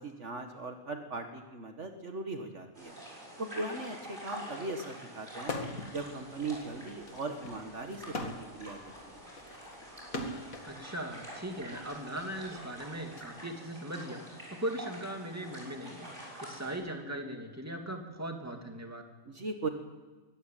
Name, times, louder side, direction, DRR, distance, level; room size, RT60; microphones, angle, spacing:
voice 1, 0.0-3.0 3.4-5.6 5.9-9.1 19.3-19.7, right 3 dB, 60° right, 5 dB, 1.9 m, -39 dB
sound 1, 2.7-16.7, equal, 35° right, 7.1 m, -47 dB
sound 2, 5.4-6.0 6.3-10.7 11.6-13.2, left 2 dB, 85° left, 2.4 m, -40 dB
voice 2, 10.7-16.1 16.4-19.0, right 1 dB, 10° right, 3 dB, 2.5 m, -39 dB
23.0 x 13.5 x 9.2 m, 1.3 s
omnidirectional pair, 1.4 m